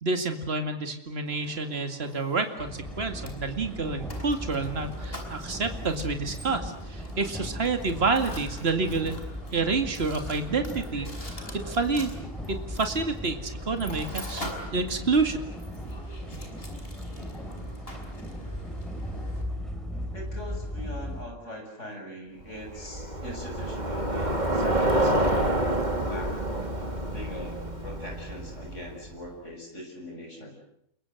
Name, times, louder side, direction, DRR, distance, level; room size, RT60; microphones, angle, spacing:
voice 1, 0.0-9.2 9.5-11.4 11.7-12.1 12.5-15.4, right 3 dB, 55° right, 6 dB, 2.5 m, -28 dB
Mechanisms, 1.3-19.4, equal, 50° left, 5.3 m, -45 dB
sound 1, 2.6-21.2, equal, ahead, 4.4 m, -37 dB
voice 2, 20.1-26.7 27.1-30.6, left 1 dB, 70° left, 2 dB, 7.1 m, -41 dB
Bicycle, 22.6-29.1, right 1 dB, 35° right, 3.6 m, -28 dB
29.0 x 23.0 x 7.8 m, 0.74 s
omnidirectional pair, 1.3 m